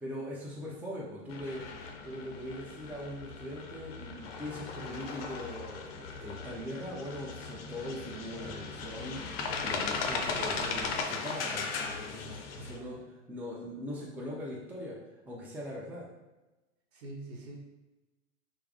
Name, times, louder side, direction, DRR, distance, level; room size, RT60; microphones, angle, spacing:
voice 1, 0.0-1.6 2.0-9.2 9.6-11.7 12.1-13.0 13.3-15.0 15.3-16.1, left 1 dB, 5° right, -5 dB, 0.5 m, -41 dB
sound 1, 1.3-12.8, left 4 dB, 55° left, 0.6 m, -37 dB
voice 2, 12.6-13.1 16.9-17.6, right 2 dB, 65° right, 0 dB, 0.9 m, -45 dB
3.4 x 2.1 x 3.4 m, 1.1 s
hypercardioid pair, 95°, 36 cm